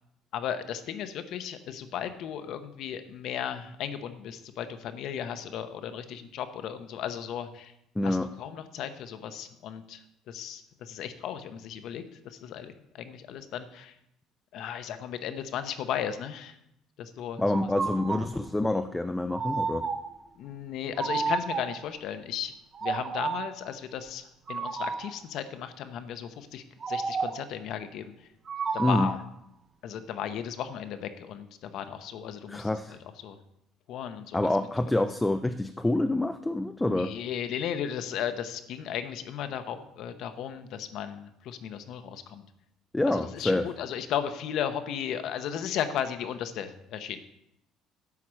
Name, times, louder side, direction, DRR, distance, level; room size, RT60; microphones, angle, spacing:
voice 1, 0.3-7.7 8.0-13.9 14.5-16.6 17.0-17.4 20.4-22.5 22.8-28.1 28.7-29.2 29.8-33.0 33.2-33.4 33.9-34.4 36.8-42.4 43.0-47.2, left 9 dB, 60° left, 10 dB, 0.9 m, -35 dB
voice 2, 8.0-8.3 17.4-19.8 28.8-29.1 32.5-33.0 34.3-37.1 42.9-43.7, left 1 dB, 10° left, 8 dB, 0.4 m, -27 dB
sound 1, 17.5-18.3 19.3-20.2 21.0-21.9 22.7-23.6 24.5-25.2 26.8-27.5 28.5-29.3, right 5 dB, 30° right, 0.8 m, -31 dB
11.0 x 4.8 x 7.4 m, 0.80 s
cardioid pair, 130°, 0 cm